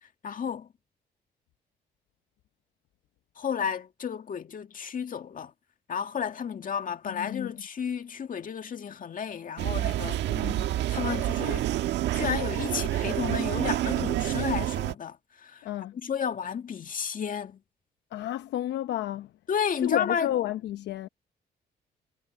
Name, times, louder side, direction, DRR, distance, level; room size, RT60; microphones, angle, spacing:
voice 1, 0.2-0.7 3.4-5.5 5.9-10.2 10.9-11.7 12.1-15.7 15.9-17.6 19.5-20.3, left 7 dB, 50° left, 2.1 m, -32 dB
voice 2, 7.1-7.6 10.4-10.7 15.6-15.9 18.1-19.3 19.8-21.1, left 13 dB, 75° left, 0.8 m, -31 dB
sound 1, 9.6-14.9, right 13 dB, 80° right, 1.4 m, -28 dB
supercardioid pair, 70°, 18 cm